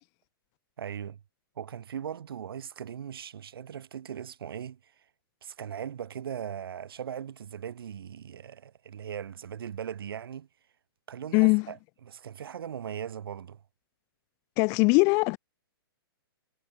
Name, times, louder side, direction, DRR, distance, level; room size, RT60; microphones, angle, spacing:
voice 1, 0.8-1.2 1.6-4.9 5.4-10.5 11.1-11.8 12.0-13.6, right 8 dB, 70° right, 7.8 m, -39 dB
voice 2, 11.3-11.7 14.6-15.4, left 31 dB, 25° left, 0.8 m, -21 dB
hypercardioid pair, 165°, 13 cm